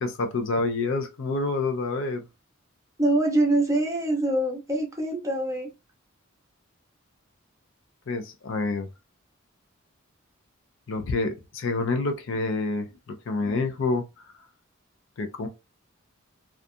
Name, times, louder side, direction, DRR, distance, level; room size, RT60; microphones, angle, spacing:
voice 1, 0.0-2.2 8.1-8.9 10.9-14.0 15.2-15.5, left 3 dB, 65° left, 0.5 m, -28 dB
voice 2, 3.0-5.7, right 1 dB, 15° right, 0.6 m, -24 dB
2.4 x 2.3 x 2.6 m
head